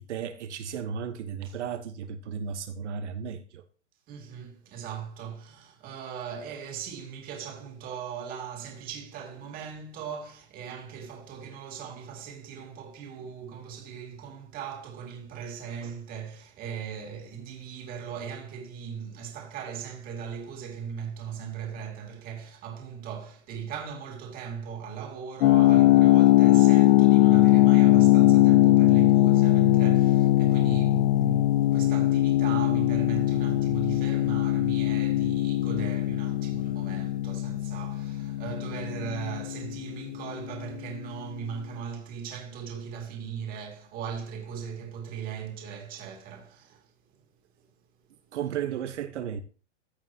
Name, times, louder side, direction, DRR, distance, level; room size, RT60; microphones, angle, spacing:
voice 1, 0.0-3.6 48.3-49.4, right 7 dB, 80° right, 1.2 m, -34 dB
voice 2, 4.1-46.9, right 7 dB, 25° right, 2.4 m, -38 dB
sound 1, 25.4-40.2, left 15 dB, 60° left, 0.8 m, -21 dB
15.0 x 5.9 x 2.9 m
supercardioid pair, 160°, 35 cm